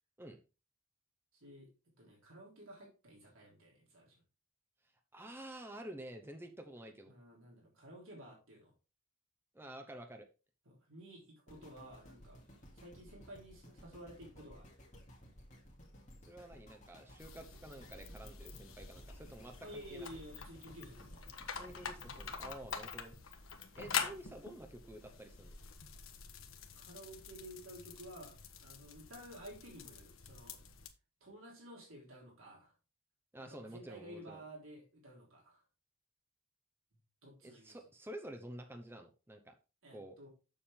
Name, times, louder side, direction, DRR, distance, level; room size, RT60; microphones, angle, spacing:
voice 1, 1.3-4.2 7.1-8.7 10.7-12.4 12.7-14.7 19.6-21.2 26.7-30.6 31.2-32.7 33.4-35.6 37.2-37.8 39.8-40.3, equal, 70° right, -2 dB, 3.5 m, -53 dB
voice 2, 5.1-7.1 9.5-10.3 16.3-20.1 21.5-23.2 23.7-25.6 33.3-34.4 37.4-39.5 39.9-40.2, right 1 dB, 10° right, 5 dB, 0.8 m, -50 dB
sound 1, 11.5-23.7 24.2-24.3, equal, 35° left, 2.4 m, -57 dB
sound 2, 17.2-30.9, left 6 dB, 70° left, 1.2 m, -46 dB
7.1 x 7.1 x 3.6 m, 0.30 s
head